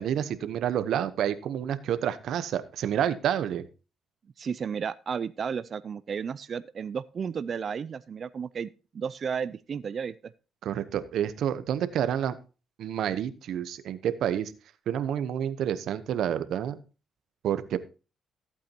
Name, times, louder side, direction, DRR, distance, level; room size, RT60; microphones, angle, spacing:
voice 1, 0.0-3.7 10.6-12.4 12.8-14.5 14.9-16.8 17.4-17.8, right 10 dB, 75° right, 13 dB, 0.9 m, -29 dB
voice 2, 4.4-8.7 8.9-10.1, right 6 dB, 50° right, 15 dB, 0.4 m, -33 dB
14.5 x 8.4 x 2.9 m, 0.33 s
cardioid pair, 90°, 0 cm